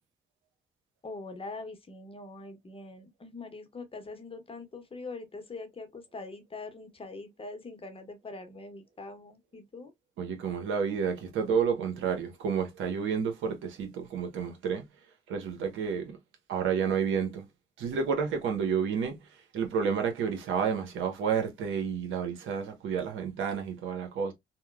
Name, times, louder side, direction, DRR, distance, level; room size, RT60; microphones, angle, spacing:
voice 1, 1.0-9.9, left 3 dB, 30° left, 0.8 m, -43 dB
voice 2, 10.2-14.8 15.3-16.2 16.5-17.5 17.8-19.2 19.5-24.3, right 6 dB, 85° right, 0.8 m, -30 dB
2.9 x 2.1 x 2.2 m
cardioid pair, 75°, 20 cm